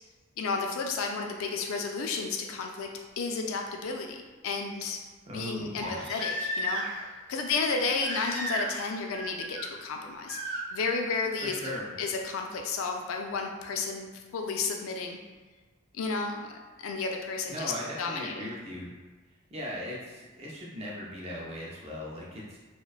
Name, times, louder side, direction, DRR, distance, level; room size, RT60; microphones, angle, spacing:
voice 1, 0.4-2.9 3.2-5.0 5.3-6.8 7.3-11.6 12.0-15.2 15.9-16.5 16.8-17.7 18.0-18.5, left 4 dB, 80° left, 3 dB, 0.3 m, -32 dB
Crying sobbing, 3.0-3.1 5.8-7.1 8.0-8.9 9.1-9.7 10.3-10.6 12.2-12.3, equal, 65° right, 0.9 m, -34 dB
voice 2, 5.3-6.0 11.4-12.0 17.5-18.9 19.5-22.6, equal, 30° right, -4 dB, 0.4 m, -38 dB
2.5 x 2.1 x 2.3 m, 1.3 s
head